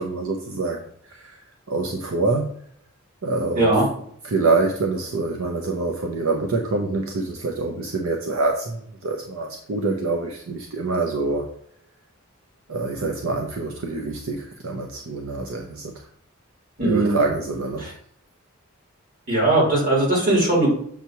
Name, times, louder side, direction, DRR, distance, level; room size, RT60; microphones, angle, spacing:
voice 1, 0.0-2.5 3.2-3.8 4.2-11.5 12.7-16.1 16.8-17.9, right 3 dB, 70° right, 2 dB, 0.7 m, -26 dB
voice 2, 3.5-3.8 16.8-17.2 19.3-20.7, right 2 dB, 45° right, -3 dB, 2.8 m, -19 dB
7.2 x 3.0 x 5.7 m, 0.64 s
head